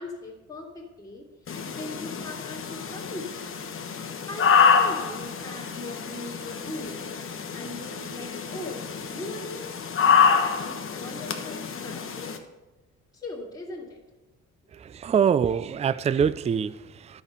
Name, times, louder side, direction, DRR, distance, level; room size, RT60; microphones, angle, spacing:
voice 1, 0.0-1.5 1.8-3.4 4.3-7.2 7.5-9.8 10.2-12.4 13.1-14.0, left 2 dB, 15° left, -5 dB, 2.2 m, -40 dB
sound 1, 1.5-12.4, left 6 dB, 45° left, 1.1 m, -26 dB
voice 2, 14.7-17.2, right 7 dB, 25° right, 16 dB, 0.3 m, -25 dB
11.5 x 5.2 x 6.7 m, 1.1 s
cardioid pair, 90°, 30 cm